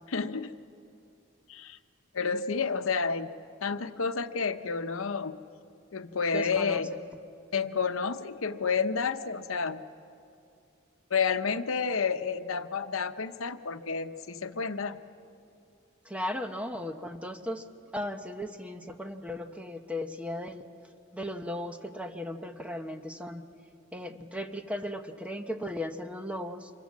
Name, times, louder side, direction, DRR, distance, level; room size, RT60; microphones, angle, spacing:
voice 1, 0.1-0.5 1.5-1.8 2.1-3.3 3.6-5.4 5.9-6.9 7.5-9.9 11.1-15.0, left 5 dB, 80° left, 10 dB, 0.9 m, -30 dB
voice 2, 6.3-6.8 16.0-17.6 17.9-20.7 21.1-23.4 23.9-26.7, left 1 dB, 5° right, 6 dB, 0.9 m, -36 dB
25.5 x 22.5 x 7.4 m, 2.5 s
head